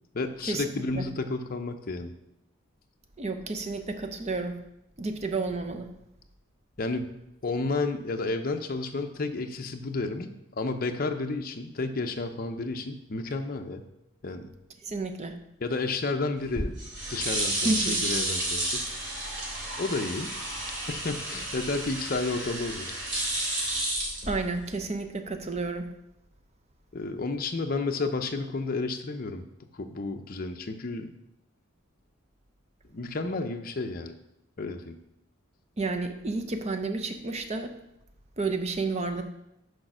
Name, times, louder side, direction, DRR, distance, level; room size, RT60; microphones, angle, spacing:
voice 1, 0.1-2.1 6.8-7.1 7.4-13.8 14.2-14.5 15.6-16.7 17.1-18.9 19.8-20.3 20.9-23.0 26.9-29.4 29.7-31.1 32.9-34.2 34.6-35.0, left 3 dB, 40° left, 5 dB, 0.6 m, -31 dB
voice 2, 3.2-4.6 5.0-5.9 14.8-15.4 17.6-18.0 24.3-25.9 35.8-37.7 38.4-39.2, right 3 dB, 30° right, 6 dB, 0.6 m, -31 dB
sound 1, 16.4-24.8, right 1 dB, 55° right, 2.5 m, -31 dB
6.6 x 4.9 x 6.1 m, 0.85 s
head